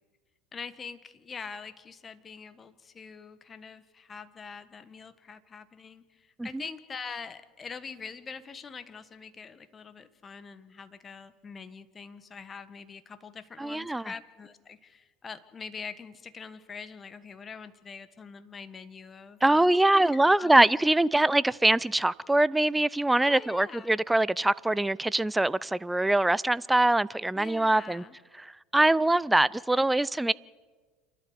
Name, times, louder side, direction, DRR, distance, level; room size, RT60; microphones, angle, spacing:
voice 1, 0.5-20.5 23.2-24.0 27.3-28.2, left 5 dB, 30° left, 1.6 m, -44 dB
voice 2, 13.6-14.1 19.4-28.0 28.4-30.3, right 2 dB, 10° right, 0.5 m, -23 dB
28.5 x 12.0 x 8.3 m
hypercardioid pair, 80°, 0 cm